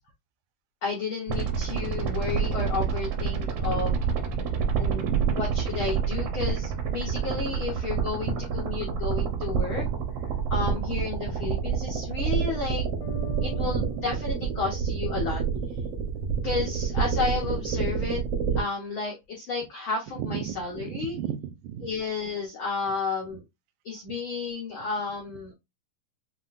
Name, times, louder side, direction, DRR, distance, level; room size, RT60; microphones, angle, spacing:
voice 1, 0.8-3.9 4.8-5.0 5.4-9.8 10.5-12.9 13.4-15.4 16.4-18.2 18.6-21.2 21.8-23.4 23.8-25.5, left 4 dB, 90° left, 1.1 m, -32 dB
sound 1, 1.3-18.6, right 6 dB, 65° right, 1.6 m, -28 dB
voice 2, 4.9-5.5 8.3-8.4 13.3-13.9 20.2-21.9, right 10 dB, 85° right, 2.3 m, -35 dB
Bass guitar, 13.0-16.5, right 1 dB, 70° left, 1.5 m, -45 dB
7.1 x 2.4 x 2.5 m
omnidirectional pair, 3.9 m